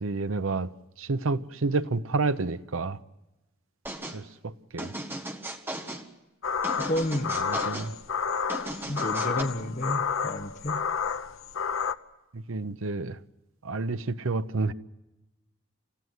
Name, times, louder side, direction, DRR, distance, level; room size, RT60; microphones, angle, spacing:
voice 1, 0.0-0.7 1.0-3.0 4.1-4.9 7.4-7.9 12.3-13.2 13.6-14.7, right 3 dB, 80° right, 0.8 m, -29 dB
sound 1, 3.9-4.2 4.8-6.1 6.6-7.9 8.5-9.4, right 1 dB, 10° right, 1.5 m, -36 dB
sound 2, 6.4-11.9, left 6 dB, 80° left, 0.8 m, -30 dB
voice 2, 6.9-7.4 8.9-10.8, left 1 dB, 35° left, 1.2 m, -30 dB
28.0 x 15.5 x 9.4 m
head